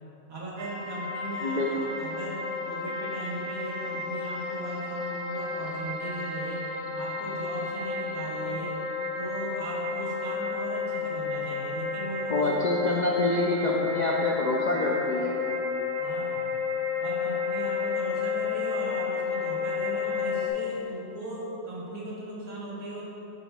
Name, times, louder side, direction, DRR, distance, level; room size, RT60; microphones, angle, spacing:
voice 1, 0.3-6.7 6.9-8.8 9.2-12.5 12.7-13.0 13.6-13.8 16.0-16.4 17.0-23.1, right 1 dB, 85° right, -5 dB, 1.7 m, -38 dB
sound 1, 0.6-20.5, left 5 dB, 65° right, 1.0 m, -31 dB
voice 2, 1.4-1.7 12.3-15.4, left 2 dB, 70° left, -2 dB, 0.4 m, -27 dB
11.0 x 4.6 x 2.3 m, 2.8 s
omnidirectional pair, 1.4 m